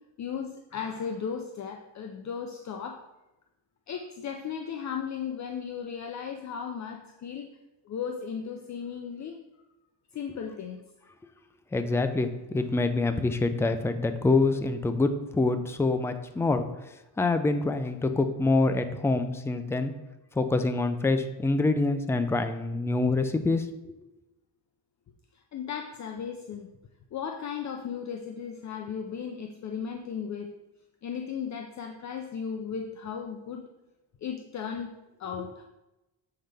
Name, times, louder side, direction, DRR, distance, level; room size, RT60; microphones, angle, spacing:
voice 1, 0.2-3.0 3.9-7.5 7.8-9.4 10.1-10.8 25.5-26.7 27.1-30.5 31.0-33.6 34.2-34.9 35.2-35.6, left 7 dB, 45° left, 4 dB, 0.6 m, -36 dB
voice 2, 11.7-16.7 17.2-19.9 20.4-23.9, left 3 dB, 5° left, 8 dB, 0.4 m, -26 dB
7.6 x 5.8 x 3.4 m, 0.97 s
cardioid pair, 125°, 42 cm